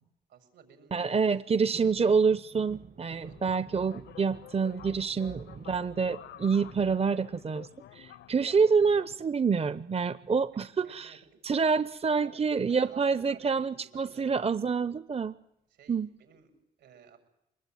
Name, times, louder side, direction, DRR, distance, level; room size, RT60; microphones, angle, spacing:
voice 1, 0.3-1.4 3.3-3.4 10.8-11.4 12.2-12.4 12.7-13.8 14.1-14.3 15.7-17.2, right 8 dB, 80° right, 6 dB, 7.3 m, -54 dB
voice 2, 0.9-11.2 11.4-15.4 15.9-16.1, right 5 dB, 35° right, 14 dB, 0.9 m, -27 dB
sound 1, 1.7-7.9 8.3-8.9 10.2-10.6 10.9-11.0 11.3-11.6 12.4-13.3 13.8-13.9, right 6 dB, 55° right, 2.5 m, -50 dB
sound 2, 3.2-9.2, left 12 dB, 80° left, 1.0 m, -50 dB
24.5 x 20.5 x 9.3 m, 0.82 s
supercardioid pair, 50°, 18 cm